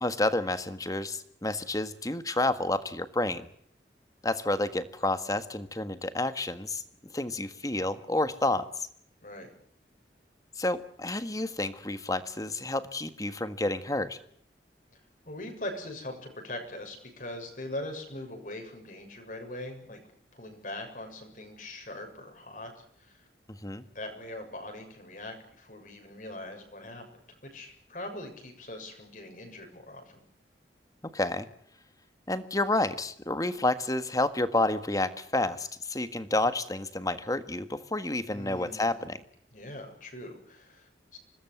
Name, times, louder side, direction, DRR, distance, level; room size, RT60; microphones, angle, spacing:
voice 1, 0.0-3.5 4.2-6.8 7.1-8.9 10.6-14.2 23.6-23.8 31.1-31.5 32.3-39.2, left 2 dB, 20° left, 11 dB, 1.6 m, -30 dB
voice 2, 15.3-20.0 20.3-22.7 23.0-23.2 23.9-30.2 38.2-39.0 39.5-41.2, left 1 dB, 45° left, 3 dB, 7.0 m, -41 dB
26.0 x 20.0 x 8.0 m, 0.66 s
head